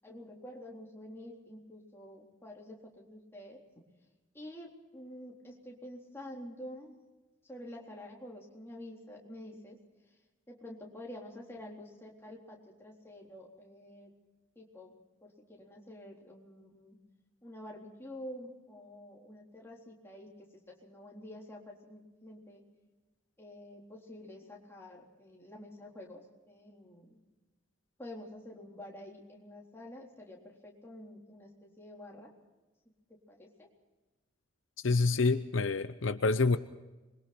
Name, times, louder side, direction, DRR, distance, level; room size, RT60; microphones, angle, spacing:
voice 1, 0.0-3.6 4.3-7.0 7.4-9.8 10.5-14.1 14.6-14.9 15.2-17.0 17.4-22.6 23.4-27.2 28.0-32.3 33.1-33.7, left 1 dB, 10° left, -2 dB, 3.8 m, -48 dB
voice 2, 34.8-36.6, left 3 dB, 70° left, 11 dB, 0.7 m, -27 dB
27.0 x 22.5 x 4.4 m, 1.1 s
head